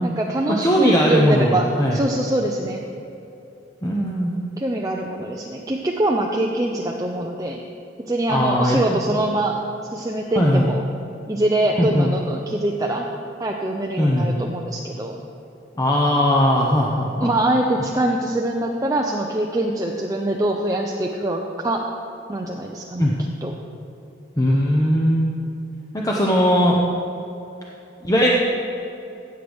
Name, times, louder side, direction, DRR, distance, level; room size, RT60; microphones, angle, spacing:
voice 1, 0.0-2.8 4.6-7.6 8.1-9.6 9.9-10.8 11.3-13.0 13.4-15.2 17.2-21.9 22.3-23.1 23.4-23.5, right 1 dB, 20° right, 0 dB, 0.5 m, -24 dB
voice 2, 0.6-2.0 3.8-4.4 8.3-8.8 9.1-9.2 10.3-10.7 11.8-12.1 14.0-14.3 15.8-17.3 23.0-23.1 24.4-25.3 25.9-26.8 28.0-28.3, equal, 20° left, -3 dB, 0.8 m, -19 dB
16.0 x 7.9 x 3.5 m, 2.8 s
head